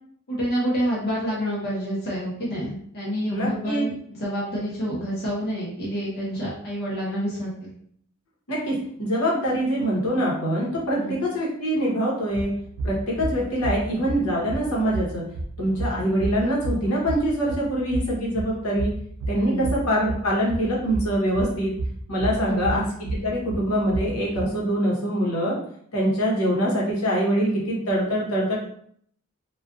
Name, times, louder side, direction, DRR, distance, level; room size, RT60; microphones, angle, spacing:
voice 1, 0.3-3.9 4.2-7.7 10.9-11.2 19.3-19.7 22.4-22.8, equal, 50° left, -7 dB, 0.8 m, -28 dB
voice 2, 3.3-3.9 8.5-12.5 12.8-15.2 15.6-18.9 19.3-21.7 22.1-25.6 25.9-28.6, equal, 90° left, -4 dB, 0.9 m, -24 dB
sound 1, 12.3-24.5, right 2 dB, 75° right, 0.4 m, -32 dB
2.4 x 2.3 x 2.4 m, 0.64 s
head